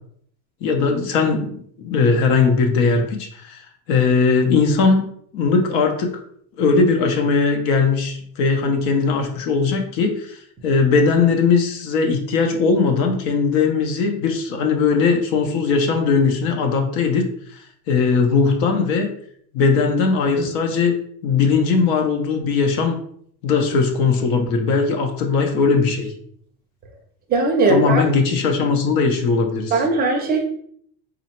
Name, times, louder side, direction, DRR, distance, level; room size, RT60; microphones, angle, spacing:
voice 1, 0.6-1.5 1.8-5.1 5.3-6.1 6.6-17.3 17.9-19.1 19.5-21.0 21.2-23.0 23.4-26.1 27.7-29.8, left 4 dB, 80° left, 4 dB, 0.8 m, -19 dB
voice 2, 27.3-28.0 29.7-30.4, right 3 dB, 25° right, 2 dB, 0.4 m, -18 dB
3.9 x 2.0 x 4.3 m, 0.64 s
cardioid pair, 170°, 45 cm